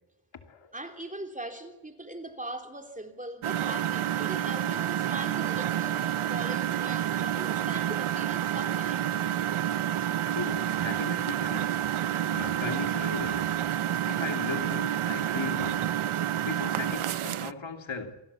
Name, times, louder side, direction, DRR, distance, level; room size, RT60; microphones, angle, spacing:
voice 1, 0.7-9.1, right 1 dB, 15° right, 3.3 m, -40 dB
Engine, 3.4-17.5, right 11 dB, 80° right, 0.8 m, -29 dB
voice 2, 10.2-11.8 12.3-13.6 14.0-15.9 16.4-18.2, left 6 dB, 65° left, 2.8 m, -37 dB
28.0 x 21.5 x 7.2 m
wide cardioid pair, 120°, 49 cm